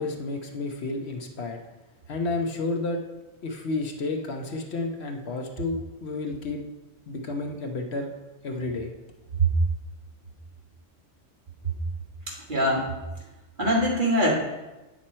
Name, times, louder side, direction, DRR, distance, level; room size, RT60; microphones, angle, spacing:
voice 1, 0.0-1.6 2.1-3.0 3.4-6.6 7.1-8.1 8.4-8.9, left 2 dB, 60° left, 3 dB, 1.0 m, -31 dB
voice 2, 12.3-12.9 13.6-14.3, right 1 dB, 40° right, -3 dB, 1.9 m, -23 dB
8.8 x 6.1 x 4.3 m, 1.1 s
omnidirectional pair, 1.3 m